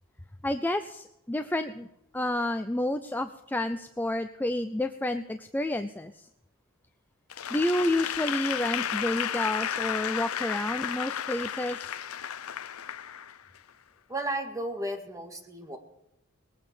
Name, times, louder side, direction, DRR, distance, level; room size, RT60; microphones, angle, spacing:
voice 1, 0.4-1.9 2.1-6.2 7.5-11.9, left 1 dB, 10° left, 8 dB, 0.5 m, -30 dB
Applause / Crowd, 7.3-13.7, left 9 dB, 85° left, 0.6 m, -33 dB
voice 2, 14.1-15.8, right 1 dB, 15° right, 3 dB, 2.2 m, -34 dB
20.0 x 8.7 x 6.8 m, 0.85 s
head